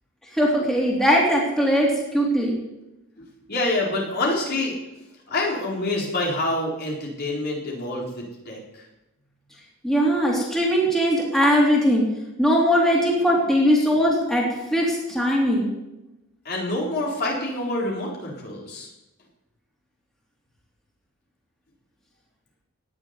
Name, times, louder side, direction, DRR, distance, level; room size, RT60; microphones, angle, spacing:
voice 1, 0.3-2.6 9.8-12.1 12.4-15.7, equal, ahead, -3 dB, 3.3 m, -20 dB
voice 2, 3.2-4.7 5.3-8.8 16.4-18.9, left 2 dB, 50° left, -2 dB, 4.4 m, -27 dB
18.0 x 7.4 x 9.8 m, 0.94 s
head